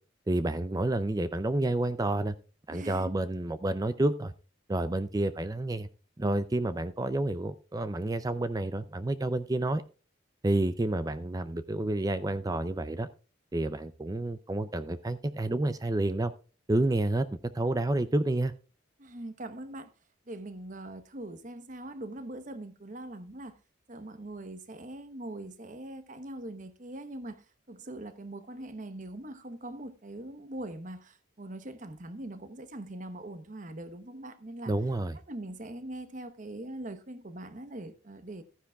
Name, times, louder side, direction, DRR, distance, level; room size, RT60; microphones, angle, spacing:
voice 1, 0.3-2.4 2.7-4.3 4.7-5.9 6.2-9.8 10.4-13.1 13.5-16.3 16.7-17.3 17.5-18.5 34.7-35.2, right 2 dB, 20° right, 0.4 m, -29 dB
voice 2, 2.7-3.1 19.0-19.9 20.3-23.5 23.9-34.7 35.3-38.4, right 1 dB, 40° right, 1.0 m, -42 dB
14.0 x 10.0 x 2.3 m
head